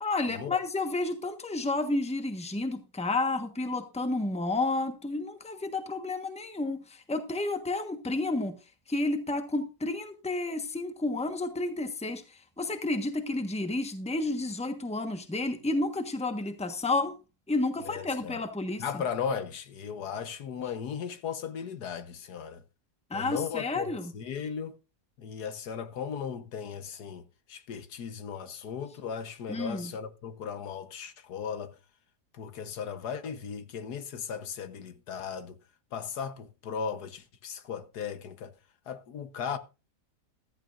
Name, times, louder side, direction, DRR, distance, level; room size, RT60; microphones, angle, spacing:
voice 1, 0.0-8.5 8.9-12.2 12.6-17.1 17.5-18.8 23.1-24.1 29.5-29.9, left 2 dB, 5° left, 1.1 m, -31 dB
voice 2, 17.9-18.4 18.8-22.6 23.1-24.8 25.2-27.2 27.5-31.8 32.3-35.6 35.9-38.5 38.9-39.6, left 7 dB, 75° left, 1.6 m, -36 dB
14.5 x 14.0 x 2.5 m
omnidirectional pair, 1.7 m